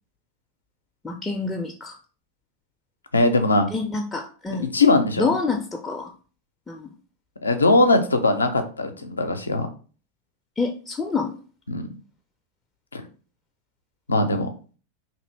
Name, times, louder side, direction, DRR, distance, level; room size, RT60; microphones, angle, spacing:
voice 1, 1.0-2.0 3.7-4.7 5.2-6.1 6.7-6.9 10.6-11.3, left 4 dB, 10° left, 2 dB, 0.4 m, -27 dB
voice 2, 3.1-3.7 4.5-5.3 7.4-9.7 11.7-11.8 12.9-13.0 14.1-14.5, left 2 dB, 75° left, 8 dB, 0.4 m, -20 dB
2.8 x 2.6 x 3.1 m, 0.39 s
figure-of-eight pair, 90°, 0 cm